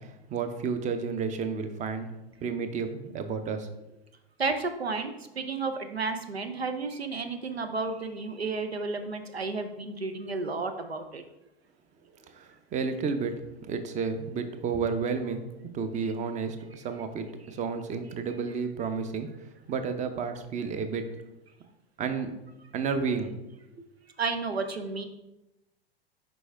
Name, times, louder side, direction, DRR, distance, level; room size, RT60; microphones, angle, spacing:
voice 1, 0.0-2.1 2.4-3.7 12.3-13.3 13.7-15.4 15.7-19.3 19.7-21.0 22.0-22.4 22.7-23.3, right 5 dB, 25° right, 9 dB, 0.6 m, -31 dB
voice 2, 4.4-11.2 24.2-25.0, right 4 dB, 85° right, 8 dB, 0.7 m, -32 dB
6.1 x 4.8 x 3.4 m, 0.96 s
figure-of-eight pair, 90°, 30 cm